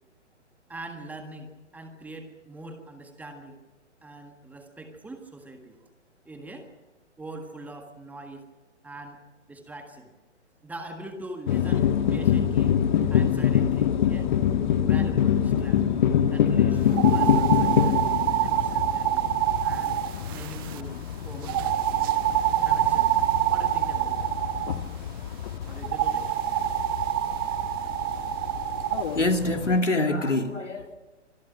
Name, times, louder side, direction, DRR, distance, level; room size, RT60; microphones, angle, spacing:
voice 1, 0.7-3.6 4.0-5.8 6.2-6.8 7.2-8.4 8.8-9.2 9.5-10.1 10.6-12.8 13.1-14.3 14.8-15.9 16.3-18.0 18.4-19.2 19.6-20.0 20.3-21.0 21.2-21.6 22.6-24.3 25.7-26.3, right 2 dB, 5° right, 5 dB, 1.6 m, -42 dB
sound 1, 11.5-29.8, left 9 dB, 40° left, 1.3 m, -26 dB
sound 2, 16.9-20.8 21.5-24.8 25.8-29.1, right 14 dB, 20° right, 0.7 m, -26 dB
voice 2, 29.1-30.9, left 2 dB, 85° left, 5 dB, 2.7 m, -25 dB
26.0 x 20.0 x 6.1 m, 1.1 s
figure-of-eight pair, 130°, 36 cm